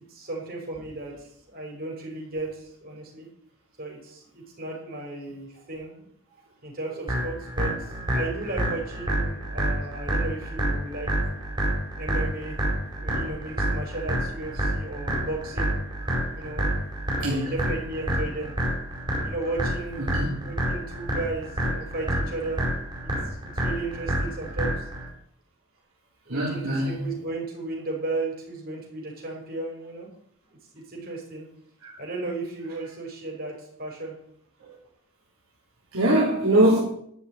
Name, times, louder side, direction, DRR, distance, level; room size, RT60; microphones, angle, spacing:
voice 1, 0.0-3.3 3.8-6.1 6.6-11.5 12.0-12.6 12.8-15.9 16.3-16.7 17.2-18.5 19.2-20.1 20.4-22.6 23.0-24.9 26.3-30.1 30.7-31.5 32.0-34.2, right 2 dB, 45° right, 5.8 m, -35 dB
sound 1, 7.1-25.1, right 1 dB, 20° right, 4.9 m, -28 dB
voice 2, 26.3-27.0 31.8-31.9 35.9-36.8, right 1 dB, 75° right, 3.7 m, -22 dB
12.5 x 6.9 x 9.5 m
head